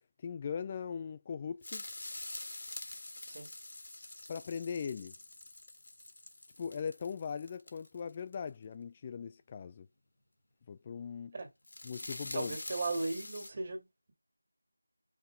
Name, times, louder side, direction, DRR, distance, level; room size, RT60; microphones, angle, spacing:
voice 1, 0.2-1.8 4.3-5.1 6.6-9.9 10.7-11.3 11.8-12.6, left 6 dB, 20° left, 0.3 m, -39 dB
sound 1, 1.6-8.3 11.4-13.5, left 2 dB, 50° left, 1.5 m, -46 dB
voice 2, 12.3-14.1, right 3 dB, 30° right, 2.1 m, -37 dB
5.5 x 4.2 x 5.0 m
figure-of-eight pair, 165°, 0 cm